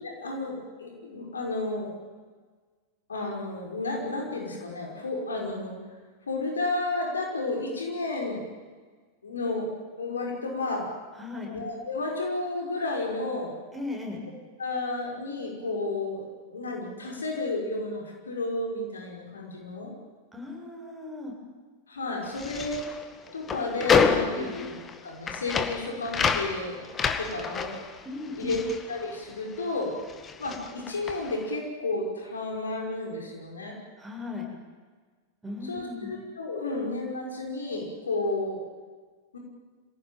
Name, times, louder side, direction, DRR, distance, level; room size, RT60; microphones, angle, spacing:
voice 1, 0.0-1.9 3.1-5.8 6.3-8.4 9.2-9.7 10.0-10.9 11.4-13.6 14.6-19.9 21.9-22.9 23.3-24.8 25.0-26.8 27.2-27.8 28.4-28.6 28.9-29.9 30.4-33.8 35.6-38.6 39.3-39.4, left 2 dB, 70° left, 0 dB, 5.6 m, -32 dB
voice 2, 11.1-11.5 13.7-14.2 20.3-21.3 24.3-24.5 28.0-28.6 34.0-34.5 35.4-36.1, left 3 dB, 5° right, -1 dB, 7.2 m, -37 dB
sound 1, 22.2-29.7 30.0-31.5, left 6 dB, 20° left, 2.1 m, -29 dB
26.0 x 17.5 x 9.3 m, 1.5 s
figure-of-eight pair, 90°, 0 cm